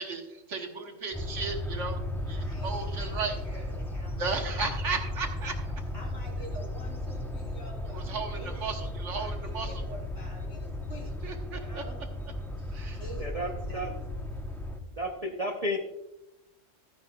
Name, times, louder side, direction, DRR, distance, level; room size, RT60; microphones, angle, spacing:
voice 1, 0.0-2.0 2.3-3.4 4.2-5.5 7.9-9.7 11.2-11.8 12.7-13.0, right 4 dB, 70° right, 4 dB, 1.5 m, -35 dB
sound 1, 1.1-14.8, left 1 dB, ahead, 0.6 m, -35 dB
voice 2, 2.2-4.4 5.3-5.4 5.9-8.7 9.2-11.1 11.5-12.0 12.4-14.1, right 1 dB, 50° left, -2 dB, 3.6 m, -48 dB
voice 3, 13.2-13.9 15.0-15.8, equal, 35° right, 2 dB, 0.7 m, -32 dB
13.5 x 9.8 x 2.3 m, 0.94 s
omnidirectional pair, 1.3 m